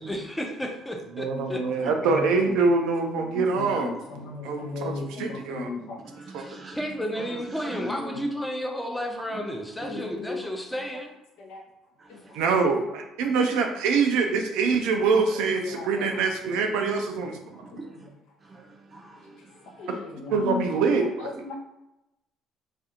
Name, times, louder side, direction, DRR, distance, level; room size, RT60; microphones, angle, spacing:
voice 1, 0.0-1.6 6.7-11.1, equal, 10° left, 2 dB, 0.5 m, -32 dB
voice 2, 1.2-4.0 4.4-4.9 5.2-5.7 6.3-6.4 12.3-17.4 20.3-21.5, right 4 dB, 70° right, 4 dB, 0.3 m, -24 dB
voice 3, 2.0-2.5 3.3-6.0 9.8-10.4 11.4-11.6 12.1-12.2 15.6-16.1 19.8-20.6 21.4-21.5, left 4 dB, 70° left, 1 dB, 0.5 m, -36 dB
voice 4, 3.7-4.0 6.1-8.1 9.9-10.0 12.0-12.4 12.7-12.8 17.8-18.1 18.4-19.5 19.8-19.9, right 2 dB, 35° right, 2 dB, 0.6 m, -42 dB
2.5 x 2.3 x 2.7 m, 0.93 s
hypercardioid pair, 50°, 0 cm